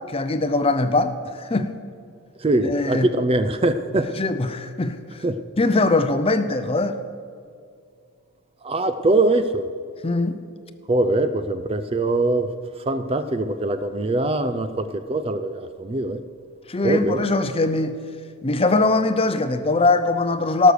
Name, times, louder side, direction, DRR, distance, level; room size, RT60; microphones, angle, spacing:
voice 1, 0.1-1.7 2.6-3.1 4.2-5.0 5.6-7.0 10.0-10.4 16.7-18.0 18.4-20.7, left 2 dB, 25° left, 0.6 m, -21 dB
voice 2, 2.4-4.1 5.2-5.4 8.6-9.7 10.9-12.5 12.9-16.2 16.8-17.2, right 2 dB, 25° right, 0.4 m, -22 dB
17.5 x 6.5 x 6.7 m
head